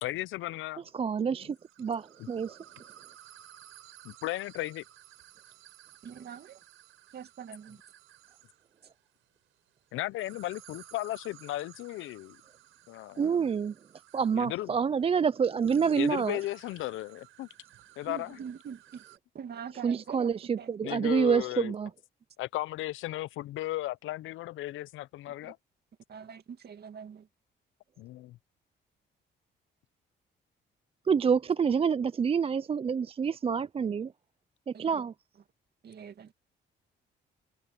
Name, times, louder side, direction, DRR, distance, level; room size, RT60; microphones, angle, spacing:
voice 1, 0.0-0.8 4.0-4.8 9.9-12.4 12.9-13.4 14.3-14.7 16.0-17.5 18.0-18.4 20.8-21.7 22.4-25.6 28.0-28.4, left 16 dB, 85° left, 0.6 m, -35 dB
voice 2, 0.9-2.6 13.2-13.7 14.1-16.4 19.8-21.9 31.1-34.1 34.7-35.1, right 6 dB, 30° right, 0.4 m, -27 dB
sound 1, 1.5-8.7 10.1-19.2, right 13 dB, 85° right, 4.9 m, -56 dB
voice 3, 6.0-6.6 7.1-7.8 18.1-19.0 19.3-20.7 25.3-25.5 26.1-27.3 34.7-35.0 35.8-36.3, right 7 dB, 55° right, 2.4 m, -44 dB
cardioid pair, 90°, 20 cm